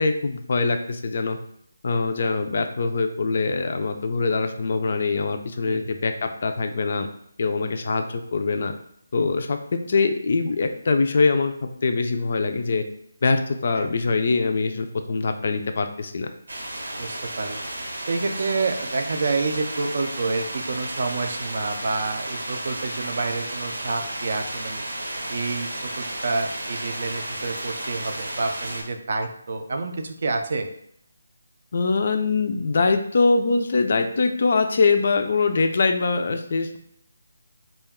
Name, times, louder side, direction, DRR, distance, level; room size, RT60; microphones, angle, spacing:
voice 1, 0.0-1.4 1.8-7.1 7.4-8.7 9.1-9.6 9.9-12.8 13.2-16.3 31.7-36.8, left 4 dB, 45° left, 7 dB, 0.3 m, -23 dB
voice 2, 5.7-6.0 13.8-13.9 17.0-17.7 18.1-24.8 25.3-30.7, right 3 dB, 45° right, 4 dB, 0.4 m, -28 dB
sound 1, 16.5-28.8, right 1 dB, 80° right, 0.8 m, -33 dB
2.3 x 2.2 x 3.5 m, 0.69 s
figure-of-eight pair, 170°, 0 cm